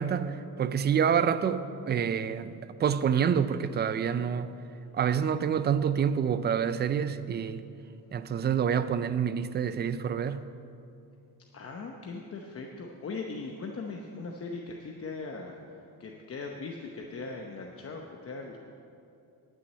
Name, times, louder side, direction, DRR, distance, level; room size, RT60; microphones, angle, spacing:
voice 1, 0.0-4.5 4.9-7.6 8.1-10.5, right 7 dB, 30° right, 0.4 m, -27 dB
voice 2, 11.5-15.6 16.0-18.6, left 3 dB, 40° left, 0.9 m, -39 dB
11.0 x 6.4 x 8.6 m
cardioid pair, 135°, 37 cm